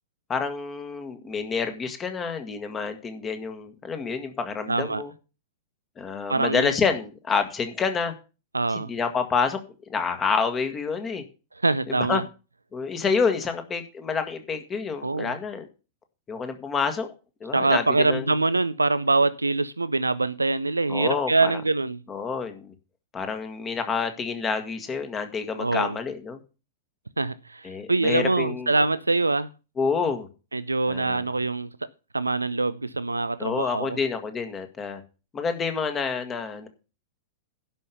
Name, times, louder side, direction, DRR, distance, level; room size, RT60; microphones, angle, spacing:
voice 1, 0.3-5.1 6.0-8.1 8.7-9.6 9.9-11.2 11.9-12.2 12.7-15.7 16.3-17.1 17.4-18.3 20.9-21.5 22.1-22.7 23.1-26.4 27.6-28.7 29.8-30.3 30.9-31.2 33.4-35.0 35.3-36.7, left 5 dB, 20° left, 1.7 m, -28 dB
voice 2, 4.7-5.0 6.3-6.7 8.5-8.9 11.6-12.2 15.0-15.3 17.5-22.0 25.6-26.0 27.2-29.5 30.5-31.7 32.1-34.0, right 3 dB, 80° right, 0.4 m, -24 dB
11.5 x 5.5 x 6.8 m
figure-of-eight pair, 100°, 0 cm